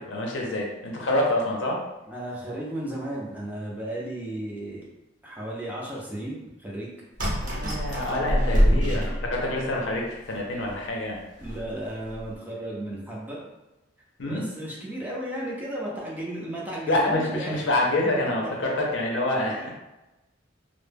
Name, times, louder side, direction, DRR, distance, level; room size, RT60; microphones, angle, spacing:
voice 1, 0.0-1.8 7.4-9.0 9.3-11.2 14.2-14.4 16.9-19.7, left 1 dB, 70° left, -1 dB, 0.6 m, -26 dB
voice 2, 2.1-4.8 5.2-6.9 8.5-9.3 11.4-13.4 14.2-17.7 19.5-19.7, right 1 dB, 10° right, -4 dB, 0.4 m, -34 dB
sound 1, 7.2-9.7 10.3-10.4 10.7-10.8 11.4-11.7 12.1-12.3, equal, 45° right, 0.7 m, -25 dB
2.2 x 2.0 x 3.2 m, 1.0 s
head